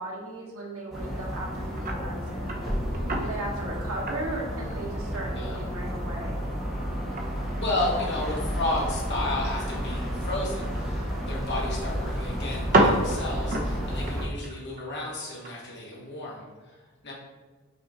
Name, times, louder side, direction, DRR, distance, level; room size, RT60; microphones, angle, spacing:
voice 1, 0.0-2.6 3.2-6.4, right 2 dB, 80° right, -3 dB, 1.5 m, -36 dB
sound 1, 0.9-14.3, equal, ahead, 1.4 m, -31 dB
sound 2, 0.9-1.2 1.8-2.0 2.4-3.4 3.9-5.3 5.6-5.7 6.1-8.2 8.5-8.9 9.2-9.3 9.5-9.6 10.6-11.6 11.9-12.0 12.3-15.7 16.1-16.2, right 1 dB, 40° right, 0.7 m, -29 dB
voice 2, 2.9-3.3 5.3-5.6 7.6-17.1, left 2 dB, 55° left, -3 dB, 1.7 m, -33 dB
6.0 x 4.3 x 3.7 m, 1.3 s
head